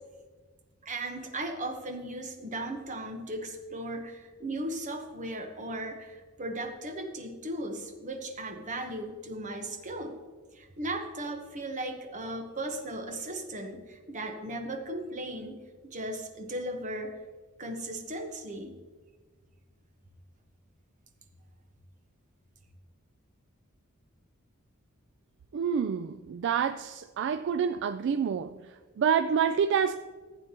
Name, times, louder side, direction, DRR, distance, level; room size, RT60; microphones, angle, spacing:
voice 1, 0.8-10.2 10.5-15.6 15.9-17.2 17.6-18.8, right 1 dB, 35° right, 4 dB, 1.1 m, -37 dB
voice 2, 25.5-28.6 29.0-30.0, right 7 dB, 55° right, 10 dB, 0.3 m, -27 dB
15.0 x 8.5 x 3.0 m, 1.4 s
head